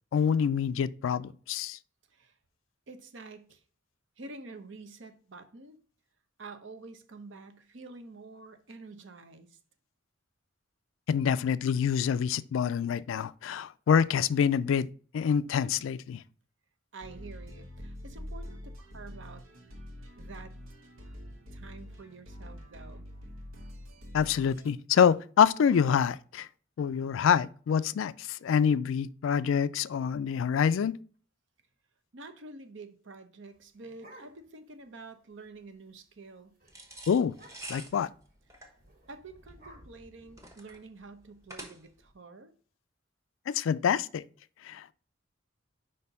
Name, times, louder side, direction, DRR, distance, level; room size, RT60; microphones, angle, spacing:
voice 1, 0.1-1.8 11.1-14.9 15.1-16.2 24.1-26.5 26.8-31.0 37.1-37.3 37.7-38.1 43.5-44.2 44.6-44.9, left 7 dB, 70° left, 0.3 m, -26 dB
voice 2, 2.9-3.6 4.2-5.8 6.4-9.6 16.9-19.4 20.2-20.5 21.5-23.1 32.1-36.6 38.5-38.7 39.1-42.5, right 3 dB, 60° right, 0.8 m, -48 dB
sound 1, 17.0-24.7, equal, 85° right, 1.2 m, -45 dB
sound 2, 33.4-34.7 35.1-35.2 35.4-35.8 36.1-36.3 36.6-36.7 37.3-37.9 38.8-40.9, right 1 dB, 45° right, 1.8 m, -55 dB
sound 3, 36.7-42.1, right 1 dB, 15° right, 1.1 m, -47 dB
5.1 x 4.3 x 5.3 m
head